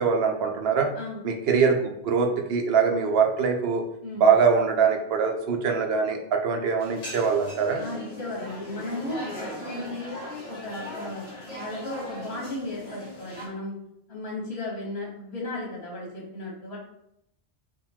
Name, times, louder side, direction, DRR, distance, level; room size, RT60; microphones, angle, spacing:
voice 1, 0.0-0.9 1.2-3.8 4.1-7.8, right 5 dB, 70° right, 3 dB, 0.9 m, -23 dB
sound 1, 6.8-13.5, left 1 dB, 55° left, 1.5 m, -39 dB
voice 2, 7.8-10.2 10.5-13.8 14.1-16.8, left 2 dB, 80° left, -3 dB, 1.5 m, -35 dB
3.7 x 2.6 x 4.3 m, 0.79 s
omnidirectional pair, 1.1 m